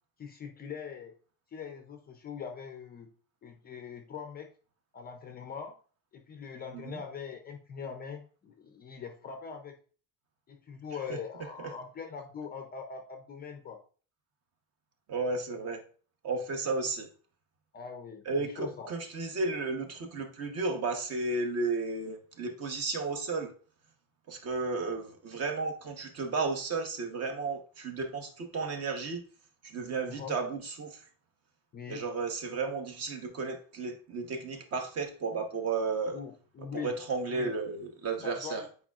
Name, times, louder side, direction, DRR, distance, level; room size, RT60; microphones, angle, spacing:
voice 1, 0.2-1.1 1.5-3.1 3.4-4.5 4.9-5.7 6.1-9.8 10.5-13.8 16.5-16.8 17.7-18.9 30.1-30.4 31.7-32.0 36.1-36.9 37.3-37.5 38.2-38.7, left 6 dB, 25° left, 0.4 m, -42 dB
voice 2, 15.1-15.8 16.2-17.1 18.3-23.5 24.3-29.2 29.6-31.0 31.9-36.2 36.8-38.6, right 3 dB, 40° right, 1.0 m, -33 dB
8.8 x 4.7 x 2.4 m
cardioid pair, 175°, 39 cm